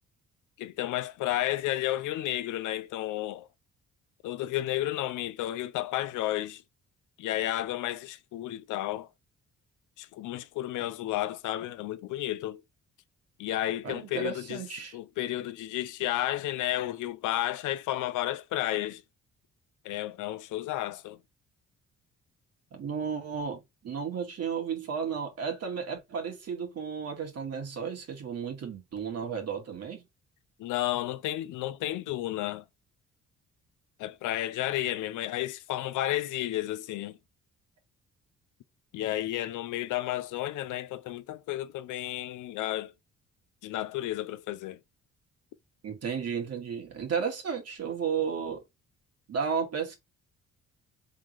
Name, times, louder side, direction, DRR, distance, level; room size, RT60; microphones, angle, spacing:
voice 1, 0.6-3.5 4.2-6.6 7.2-9.1 10.0-12.6 13.4-14.6 14.9-19.0 19.8-21.2 30.6-32.6 34.0-37.2 38.9-42.9 43.6-44.8, left 14 dB, 85° left, 0.6 m, -32 dB
voice 2, 13.8-14.9 22.7-30.1 45.8-48.6 49.3-50.0, right 6 dB, 55° right, 1.9 m, -33 dB
3.8 x 3.7 x 3.1 m
cardioid pair, 90°, 30 cm